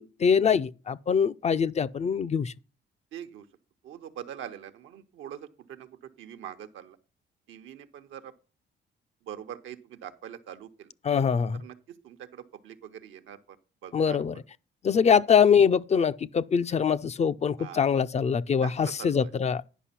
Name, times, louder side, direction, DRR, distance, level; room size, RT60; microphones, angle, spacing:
voice 1, 0.0-2.5 11.0-11.6 13.9-14.3 14.8-19.6, left 6 dB, 35° left, 0.4 m, -23 dB
voice 2, 3.1-3.5 3.8-7.0 7.5-8.3 9.2-10.9 11.6-13.4 13.8-14.2 17.6-17.9 18.6-19.3, right 10 dB, 80° right, 0.9 m, -43 dB
10.0 x 5.3 x 5.7 m
cardioid pair, 90°, 20 cm